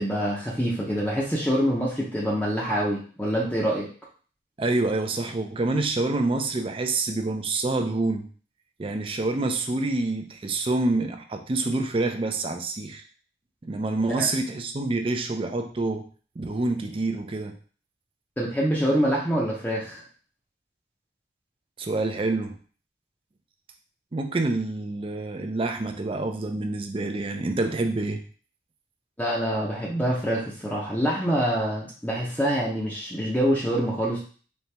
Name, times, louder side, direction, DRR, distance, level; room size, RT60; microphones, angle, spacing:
voice 1, 0.0-3.9 14.2-14.3 18.4-20.0 29.2-34.2, equal, 10° left, -5 dB, 0.7 m, -25 dB
voice 2, 4.6-8.3 8.8-13.0 13.6-16.1 16.4-17.6 21.8-22.5 24.1-28.2, right 2 dB, 30° right, 6 dB, 0.4 m, -27 dB
4.3 x 2.8 x 3.3 m, 0.41 s
head